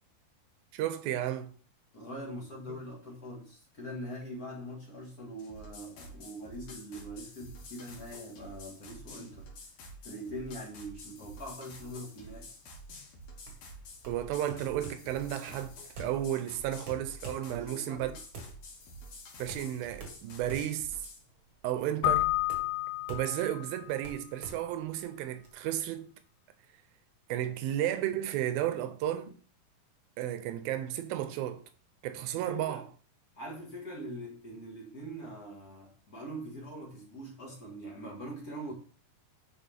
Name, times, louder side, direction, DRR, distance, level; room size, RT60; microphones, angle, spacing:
voice 1, 0.7-1.5 14.1-18.1 19.4-21.0 21.6-22.3 23.1-26.1 27.3-29.3 30.2-31.6 32.0-32.8, right 12 dB, 80° right, 2.4 m, -33 dB
voice 2, 1.9-9.5 10.0-12.5 17.5-18.2 32.3-32.8 33.4-38.7, equal, 45° left, 1.2 m, -43 dB
sound 1, 5.4-21.2, equal, 60° left, 3.3 m, -49 dB
sound 2, 13.3-25.5, right 3 dB, 50° right, 1.5 m, -48 dB
Keyboard (musical), 22.0-23.8, left 17 dB, 90° left, 1.9 m, -30 dB
10.0 x 4.8 x 3.5 m
omnidirectional pair, 4.5 m